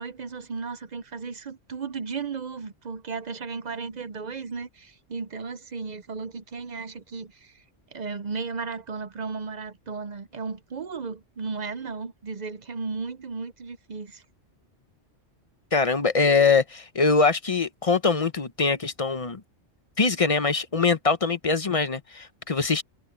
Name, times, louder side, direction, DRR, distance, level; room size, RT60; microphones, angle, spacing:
voice 1, 0.0-7.6 7.9-14.2, right 4 dB, 45° right, 0.7 m, -35 dB
voice 2, 15.7-19.4 20.0-22.8, left 4 dB, 35° left, 0.8 m, -23 dB
omnidirectional pair, 1.2 m